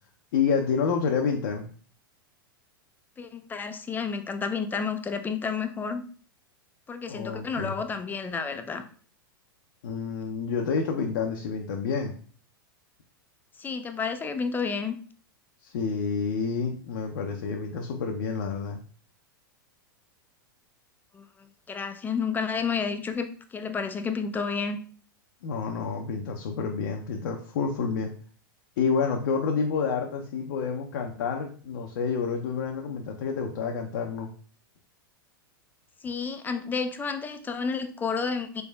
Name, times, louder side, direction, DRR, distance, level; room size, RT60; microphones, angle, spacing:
voice 1, 0.3-1.7 7.1-7.8 9.8-12.2 15.6-18.8 25.4-28.1 28.8-34.3, left 5 dB, 65° left, 2 dB, 0.6 m, -29 dB
voice 2, 3.2-6.0 6.9-8.8 13.6-15.0 21.1-21.2 21.7-24.8 36.0-38.6, left 5 dB, 15° left, 8 dB, 0.4 m, -30 dB
4.2 x 3.3 x 2.3 m, 0.43 s
hypercardioid pair, 100°, 12 cm